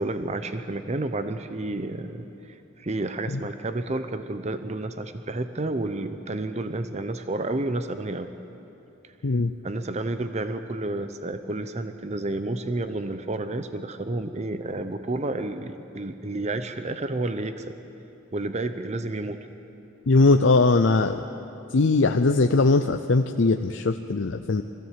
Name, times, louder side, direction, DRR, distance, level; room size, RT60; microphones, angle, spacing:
voice 1, 0.0-8.3 9.0-9.1 9.6-17.7 18.3-19.4, right 2 dB, 35° right, 9 dB, 0.7 m, -30 dB
voice 2, 20.1-21.2 21.7-24.6, left 3 dB, 70° left, 6 dB, 0.6 m, -20 dB
22.0 x 16.0 x 7.6 m, 2.9 s
head